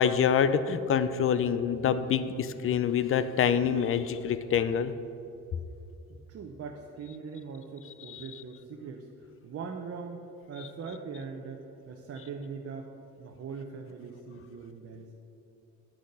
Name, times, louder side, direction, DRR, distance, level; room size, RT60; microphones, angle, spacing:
voice 1, 0.0-4.9 8.1-8.2, left 7 dB, 45° left, 12 dB, 0.5 m, -26 dB
voice 2, 6.1-9.1 9.4-12.9 13.2-15.1, right 5 dB, 50° right, 2 dB, 0.8 m, -41 dB
10.0 x 6.4 x 5.4 m, 2.7 s
cardioid pair, 90°, 30 cm